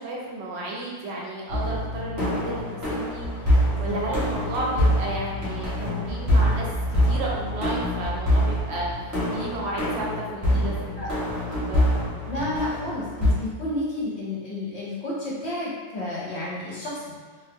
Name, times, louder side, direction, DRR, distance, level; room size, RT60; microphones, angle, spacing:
voice 1, 0.0-11.9, right 2 dB, 65° right, -3 dB, 0.8 m, -33 dB
sound 1, 1.5-13.3, equal, 15° right, 0.9 m, -25 dB
voice 2, 12.3-17.2, left 1 dB, 60° left, -6 dB, 1.0 m, -31 dB
2.5 x 2.2 x 3.4 m, 1.5 s
omnidirectional pair, 1.3 m